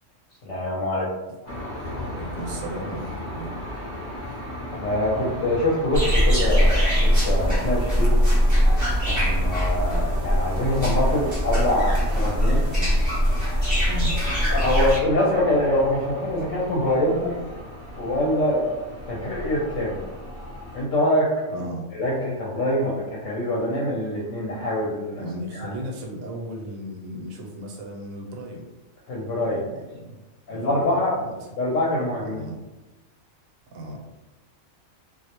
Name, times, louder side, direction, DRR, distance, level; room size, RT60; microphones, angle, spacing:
voice 1, 0.4-1.1 4.7-8.1 9.1-12.6 14.5-17.4 18.0-18.7 19.1-20.0 20.7-21.3 21.9-25.2 25.6-25.7 29.1-29.6 30.5-31.1 31.6-32.4, left 1 dB, 70° left, -5 dB, 0.9 m, -24 dB
sound 1, 1.5-20.8, left 1 dB, 50° left, 0.6 m, -36 dB
voice 2, 2.1-3.5 12.7-12.9 13.9-14.1 19.1-19.4 21.5-21.9 25.2-28.7 29.5-30.2 30.5-31.5 32.3-32.6 33.7-34.0, right 1 dB, 90° right, 0 dB, 1.0 m, -35 dB
sound 2, 5.9-15.0, equal, 20° right, 0.6 m, -21 dB
2.3 x 2.0 x 2.8 m, 1.1 s
omnidirectional pair, 1.4 m